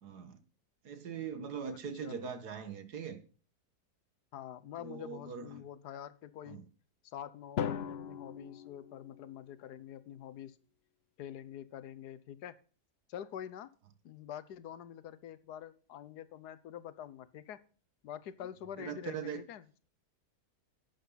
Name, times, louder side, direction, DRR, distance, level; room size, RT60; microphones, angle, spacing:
voice 1, 0.0-0.4 0.8-3.2 4.8-5.6 6.5-6.6 18.8-19.4, right 6 dB, 90° right, 2.1 m, -41 dB
voice 2, 4.3-6.6 7.0-10.6 11.2-12.5 13.1-13.7 14.0-17.6 18.0-19.8, left 10 dB, 85° left, 1.4 m, -46 dB
Drum, 7.6-9.7, left 8 dB, 55° left, 0.7 m, -39 dB
11.5 x 8.5 x 3.9 m
omnidirectional pair, 1.7 m